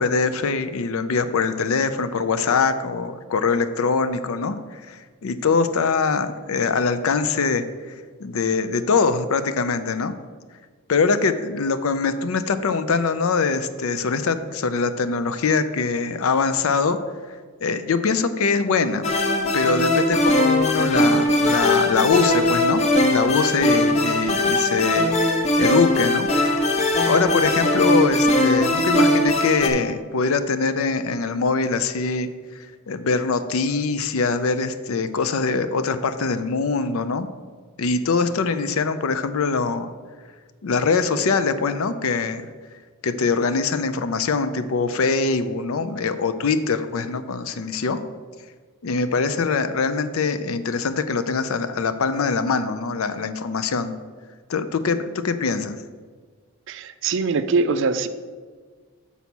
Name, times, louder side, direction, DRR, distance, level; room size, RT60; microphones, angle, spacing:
voice 1, 0.0-7.7 8.2-10.1 10.9-17.0 17.6-19.1 19.5-22.8 23.1-25.1 25.3-26.3 26.7-26.8 27.1-32.3 32.6-37.3 37.8-39.9 40.6-42.5 43.0-48.0 48.8-53.9 54.5-55.8, left 4 dB, 70° left, 10 dB, 0.5 m, -23 dB
sound 1, 19.0-29.7, left 1 dB, 30° left, 0.7 m, -20 dB
voice 2, 56.7-58.1, right 4 dB, 60° right, 11 dB, 0.4 m, -22 dB
7.0 x 4.1 x 6.1 m, 1.5 s
head